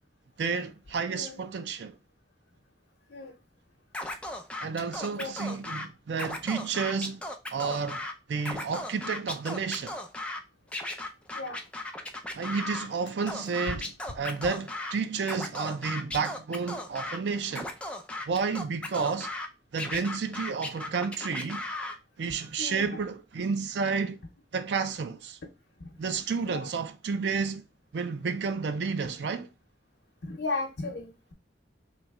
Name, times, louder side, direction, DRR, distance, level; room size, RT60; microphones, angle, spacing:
voice 1, 0.4-2.0 4.6-7.2 7.5-8.0 8.3-10.0 12.3-17.7 18.3-19.3 19.7-21.6 22.2-24.2 24.5-25.4 26.0-27.6 27.9-29.5, right 5 dB, 75° right, 0.4 m, -31 dB
Scratching (performance technique), 3.9-5.8 6.1-8.1 8.4-10.4 10.7-12.9 13.3-14.9 15.2-17.2 17.5-19.5 19.8-22.0, left 2 dB, 5° left, 0.4 m, -36 dB
voice 2, 5.0-5.6 11.3-11.6 13.2-13.3 13.7-13.8 14.1-14.2 22.3-23.0 25.8-26.0 26.4-26.7 30.2-31.3, left 3 dB, 90° left, 0.8 m, -36 dB
3.1 x 3.0 x 3.5 m
head